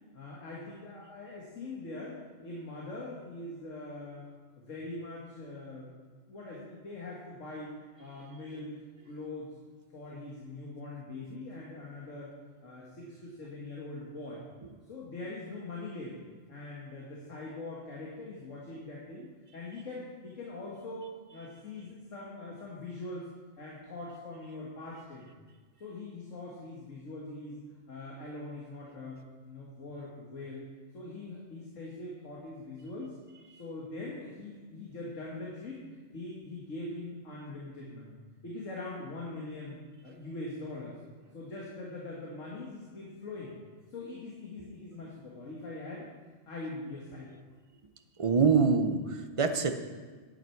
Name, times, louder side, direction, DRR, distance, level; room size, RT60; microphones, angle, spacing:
voice 1, 0.1-4.3 4.6-5.9 6.3-7.7 8.0-8.7 9.1-9.5 9.9-12.3 12.6-14.4 14.9-16.2 16.5-19.3 19.5-23.3 23.6-25.3 25.8-30.7 30.9-33.1 33.6-35.8 36.1-38.2 38.4-41.0 41.3-43.5 43.9-46.1 46.5-47.4, left 2 dB, 75° left, -4 dB, 2.0 m, -42 dB
voice 2, 48.2-49.7, right 5 dB, 35° right, 7 dB, 0.6 m, -25 dB
11.0 x 8.8 x 4.6 m, 1.4 s
omnidirectional pair, 1.3 m